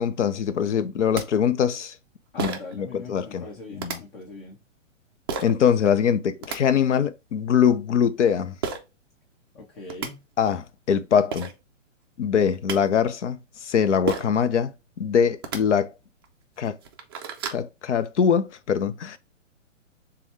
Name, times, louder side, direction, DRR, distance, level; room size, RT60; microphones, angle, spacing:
voice 1, 0.0-2.0 2.4-3.4 3.7-4.0 5.4-8.5 10.4-11.5 12.2-14.7 15.0-15.9 16.6-16.8 17.5-19.2, left 7 dB, 65° left, 0.7 m, -23 dB
sound 1, 0.8-0.9 1.1-1.2 2.4-2.8 3.8-4.0 5.3-5.5 6.2-6.6 8.6-8.8 9.6-9.7 9.9-10.1 11.0-11.1 11.3-11.5 12.3-12.8 14.1-14.4 15.3-15.6 16.2-16.3 16.7-17.6, right 6 dB, 20° right, 0.4 m, -31 dB
voice 2, 2.3-4.6 9.5-10.2, left 3 dB, 40° left, 1.3 m, -41 dB
6.9 x 2.3 x 3.3 m
figure-of-eight pair, 125°, 39 cm